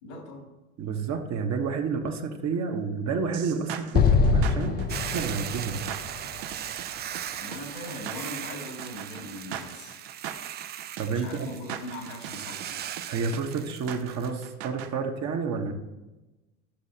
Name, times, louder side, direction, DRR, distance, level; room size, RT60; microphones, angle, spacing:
voice 1, 0.0-0.5 7.4-10.0 11.1-12.8, left 1 dB, 80° left, 1 dB, 2.6 m, -40 dB
voice 2, 0.8-5.9 11.0-11.5 13.1-15.7, right 5 dB, 40° right, 3 dB, 1.3 m, -30 dB
sound 1, 3.3-14.9, right 9 dB, 65° right, 0.8 m, -40 dB
Explosion, 3.9-7.2, left 5 dB, 25° left, 0.5 m, -25 dB
Hiss / Boiling, 4.9-14.3, right 10 dB, 25° right, 0.3 m, -38 dB
13.0 x 6.3 x 2.8 m, 1.1 s
hypercardioid pair, 75°, 39 cm